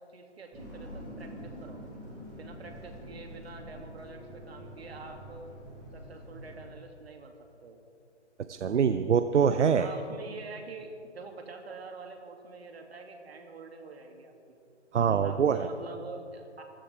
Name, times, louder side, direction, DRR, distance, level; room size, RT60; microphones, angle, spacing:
voice 1, 0.1-1.9 2.3-5.5 5.9-7.8 9.7-14.6 15.2-16.6, right 3 dB, 60° right, 3 dB, 2.5 m, -46 dB
sound 1, 0.5-6.6, equal, 5° right, 0.6 m, -45 dB
voice 2, 8.5-9.9 14.9-15.6, right 7 dB, 80° right, 10 dB, 0.8 m, -24 dB
24.5 x 15.0 x 3.4 m, 2.4 s
hypercardioid pair, 165°, 35 cm